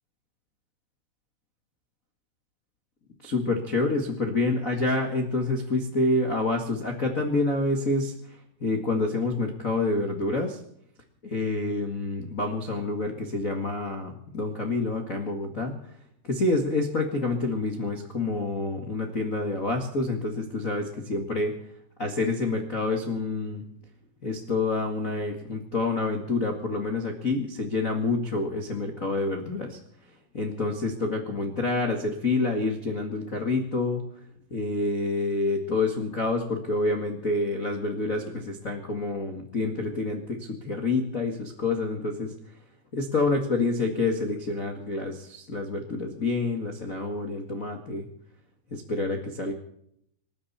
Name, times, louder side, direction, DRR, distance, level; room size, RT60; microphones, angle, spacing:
voice 1, 3.2-10.6 11.2-15.8 16.2-21.5 22.0-23.6 24.2-29.8 30.3-34.0 34.5-42.3 42.9-48.1 48.7-49.5, left 3 dB, 50° left, 1 dB, 0.9 m, -28 dB
27.0 x 12.5 x 4.3 m, 0.71 s
omnidirectional pair, 4.9 m